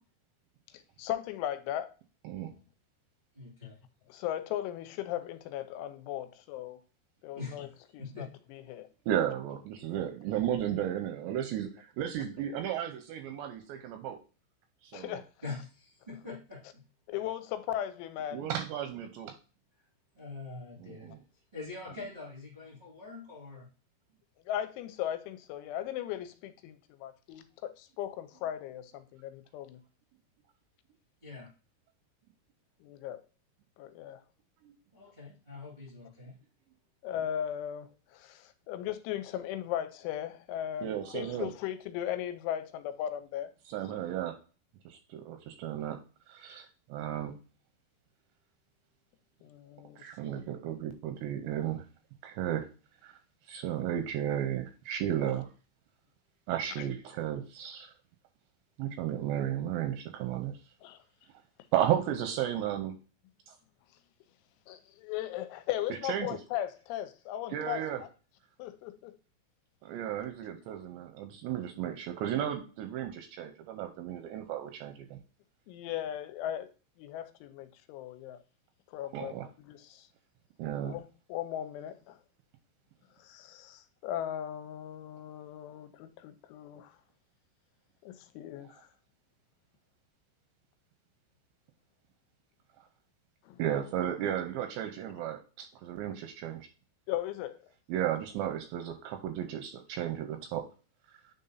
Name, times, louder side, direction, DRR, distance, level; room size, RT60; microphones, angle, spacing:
voice 1, 0.7-1.9 4.1-6.8 7.2-8.9 14.9-15.3 17.1-18.5 24.5-29.8 32.8-33.2 33.8-34.2 37.0-43.5 49.4-50.4 56.8-56.9 60.8-61.0 64.7-68.1 68.6-69.2 75.7-76.7 77.0-78.4 78.9-80.1 80.8-82.2 83.2-87.0 88.0-88.8 93.4-93.6 97.1-97.7, left 11 dB, 85° left, 3.0 m, -37 dB
voice 2, 3.3-3.8 7.3-7.6 8.0-8.3 15.4-16.6 17.1-17.2 20.1-21.1 21.5-23.7 31.2-31.5 34.9-36.4, left 3 dB, 45° right, 0.6 m, -43 dB
voice 3, 9.1-14.2 14.8-15.2 18.3-19.3 20.8-21.2 34.6-34.7 40.8-41.5 43.7-44.3 44.9-46.0 46.3-47.4 50.0-51.8 52.2-52.7 53.0-53.1 53.5-55.5 56.5-57.9 58.8-60.5 61.7-63.0 63.5-63.6 66.1-66.3 67.5-68.0 69.8-75.2 79.1-79.5 80.6-81.0 93.6-96.7 97.9-100.6, right 10 dB, 85° right, 2.6 m, -34 dB
9.4 x 3.7 x 2.6 m
omnidirectional pair, 5.5 m